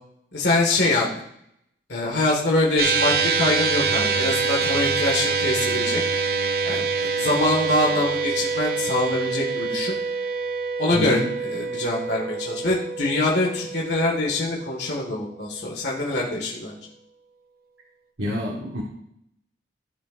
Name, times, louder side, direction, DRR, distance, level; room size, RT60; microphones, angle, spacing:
voice 1, 0.3-1.1 1.9-6.0 6.6-9.9 10.8-16.7, left 2 dB, 75° left, -2 dB, 1.8 m, -24 dB
sound 1, 2.8-15.3, right 4 dB, 55° right, 0.7 m, -26 dB
voice 2, 10.9-11.3 18.2-18.8, left 1 dB, 85° right, -3 dB, 1.5 m, -27 dB
16.5 x 6.2 x 2.6 m, 0.74 s
head